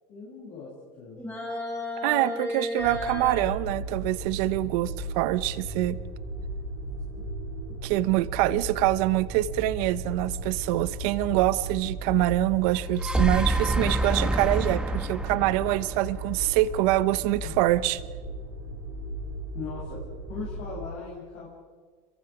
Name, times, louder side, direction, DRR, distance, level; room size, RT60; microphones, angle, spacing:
voice 1, 0.1-0.7 1.0-1.2 17.4-17.5 19.5-20.0 20.3-21.5, left 4 dB, 55° left, -5 dB, 7.9 m, -39 dB
sound 1, 1.2-3.5, left 2 dB, 10° left, 6.8 m, -33 dB
voice 2, 2.0-6.0 7.8-18.0, right 17 dB, 75° right, 15 dB, 1.1 m, -25 dB
sound 2, 2.8-20.9, right 1 dB, 55° right, 5.2 m, -36 dB
sound 3, 12.8-17.0, right 1 dB, 5° right, 1.6 m, -27 dB
28.5 x 23.0 x 5.1 m, 1.5 s
supercardioid pair, 130°, 20 cm